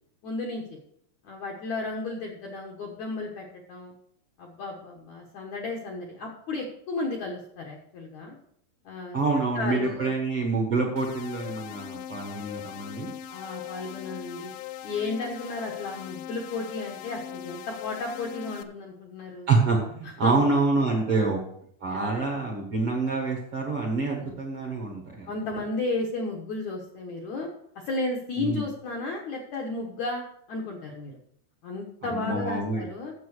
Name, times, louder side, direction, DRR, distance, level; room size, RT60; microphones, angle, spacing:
voice 1, 0.2-0.8 1.2-3.9 4.4-8.4 8.9-9.2 9.6-10.1 13.3-14.5 14.8-19.5 20.0-20.4 21.1-21.3 21.9-22.2 24.2-24.4 25.3-27.5 27.8-31.2 31.6-33.1, left 3 dB, 65° left, 1 dB, 1.9 m, -33 dB
voice 2, 9.1-13.1 19.5-21.4 21.8-25.3 28.4-28.7 32.0-32.9, right 3 dB, 55° right, -1 dB, 1.6 m, -26 dB
sound 1, 11.0-18.6, left 11 dB, 85° left, 2.9 m, -40 dB
9.3 x 7.4 x 6.4 m, 0.68 s
omnidirectional pair, 4.8 m